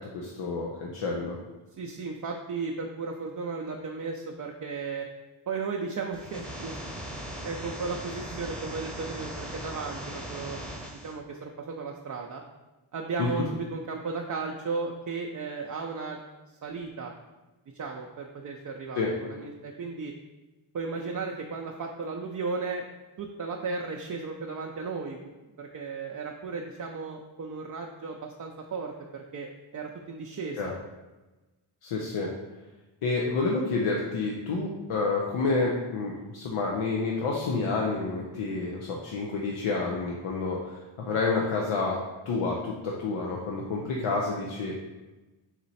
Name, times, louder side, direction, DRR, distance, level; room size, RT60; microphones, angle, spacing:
voice 1, 0.0-1.4 13.2-13.4 19.0-19.1 30.6-30.7 31.8-32.3 33.0-42.0 42.3-44.8, left 3 dB, 80° left, -2 dB, 0.7 m, -29 dB
voice 2, 1.8-5.1 5.5-7.0 7.4-10.6 10.9-12.4 12.9-16.2 16.6-17.1 17.7-20.1 20.7-22.8 23.2-25.2 25.6-30.7, right 4 dB, 40° right, 1 dB, 0.5 m, -35 dB
sound 1, 6.1-11.1, right 1 dB, ahead, 0.9 m, -39 dB
4.2 x 3.0 x 4.1 m, 1.1 s
cardioid pair, 55°, 49 cm